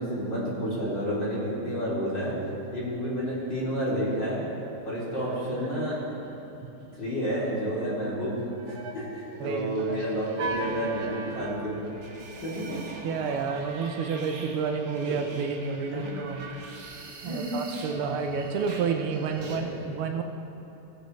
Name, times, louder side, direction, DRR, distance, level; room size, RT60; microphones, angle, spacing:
voice 1, 0.0-2.4 2.7-4.5 4.9-6.0 7.0-8.3 8.7-11.8 12.4-12.8 15.1-15.2 15.9-16.2 17.2-17.5 19.4-20.0, equal, 55° left, -8 dB, 3.6 m, -30 dB
sound 1, 3.4-3.9 4.1-4.2 4.5-6.3 8.3-19.6, right 3 dB, 55° right, 1.4 m, -41 dB
voice 2, 9.4-10.0 13.0-16.4 17.2-20.2, right 5 dB, 85° right, 5 dB, 1.7 m, -30 dB
17.0 x 8.9 x 3.1 m, 3.0 s
omnidirectional pair, 2.3 m